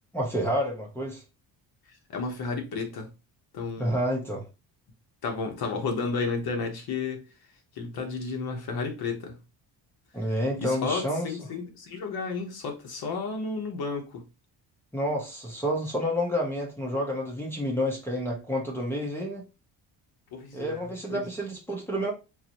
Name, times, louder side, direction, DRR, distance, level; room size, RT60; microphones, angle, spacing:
voice 1, 0.1-1.2 3.8-4.5 10.1-11.3 14.9-19.4 20.5-22.1, equal, 5° left, 0.7 m, -29 dB
voice 2, 2.1-3.1 3.5-4.0 5.2-7.2 7.7-9.4 10.6-14.2 20.3-21.3, left 4 dB, 55° left, 1.0 m, -32 dB
4.0 x 2.6 x 2.9 m
cardioid pair, 170°, 44 cm